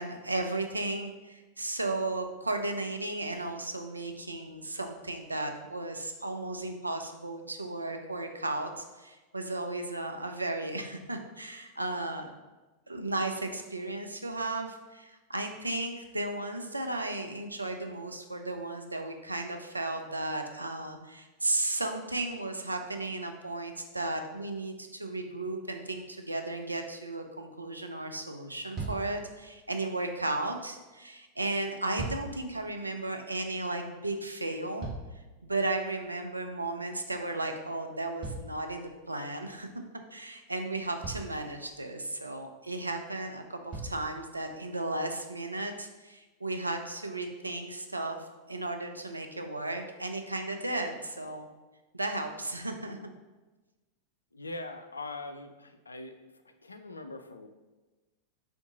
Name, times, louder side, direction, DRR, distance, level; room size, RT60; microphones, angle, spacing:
voice 1, 0.0-12.3 12.9-34.9 35.4-39.7 40.1-48.2 48.5-51.5 51.9-53.1, right 2 dB, 85° right, 5 dB, 0.3 m, -35 dB
sound 1, 28.7-29.2 31.6-32.4 34.3-35.4 38.2-39.2 40.4-40.5 41.0-41.5 42.9-43.0 43.7-44.1 44.9-45.0, right 3 dB, 30° right, 1.3 m, -39 dB
voice 2, 54.3-56.1 56.5-57.5, left 2 dB, 80° left, 7 dB, 0.3 m, -42 dB
3.5 x 2.6 x 3.7 m, 1.2 s
figure-of-eight pair, 90°, 0 cm